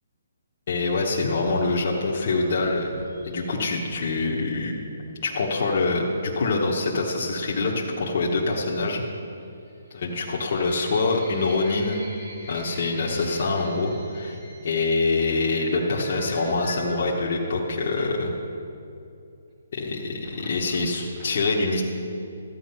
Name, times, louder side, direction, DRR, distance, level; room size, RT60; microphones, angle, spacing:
voice 1, 0.7-4.9 5.2-9.0 9.9-12.0 12.5-14.4 14.6-18.4 19.7-21.8, left 3 dB, 35° left, -4 dB, 1.1 m, -25 dB
sound 1, 1.4-4.0 5.6-5.9 7.0-7.3 8.5-9.1 9.4-18.5 19.5-21.3, equal, 15° right, 1.9 m, -43 dB
13.0 x 9.1 x 5.6 m, 2.6 s
hypercardioid pair, 180°, 0 cm